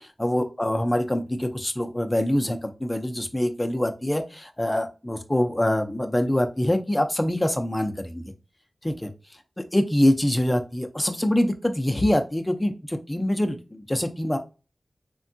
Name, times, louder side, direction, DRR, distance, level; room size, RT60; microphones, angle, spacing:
voice 1, 0.0-8.2 8.8-9.1 9.6-14.4, left 1 dB, 20° left, 5 dB, 0.5 m, -24 dB
3.4 x 2.2 x 2.6 m, 0.30 s
cardioid pair, 45°, 0 cm